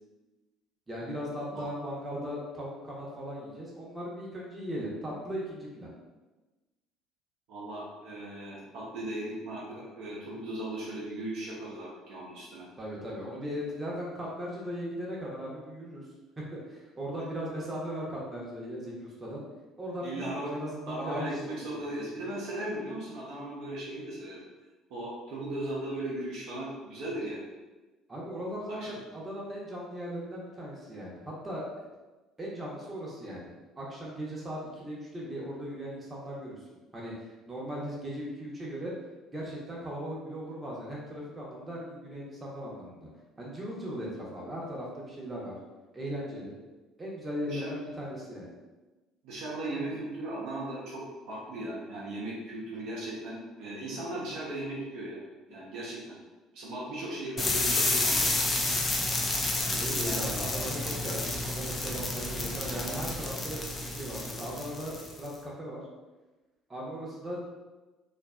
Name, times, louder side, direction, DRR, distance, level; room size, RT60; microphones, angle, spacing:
voice 1, 0.9-5.9 12.8-16.0 16.4-19.4 19.8-21.9 28.1-31.6 32.4-36.6 36.9-38.9 39.3-43.1 43.4-45.6 45.9-46.5 47.0-48.5 59.8-65.8 66.7-67.4, equal, 25° right, -4 dB, 0.8 m, -38 dB
voice 2, 7.5-12.7 20.0-20.5 20.9-24.4 24.9-27.5 28.7-29.0 47.5-47.7 49.2-55.2 55.5-56.2 56.5-58.3 60.0-60.2, right 1 dB, 65° right, -6 dB, 0.6 m, -37 dB
sound 1, 57.4-65.3, left 2 dB, 30° left, 0.4 m, -30 dB
2.5 x 2.4 x 2.2 m, 1.2 s
hypercardioid pair, 60°, 0 cm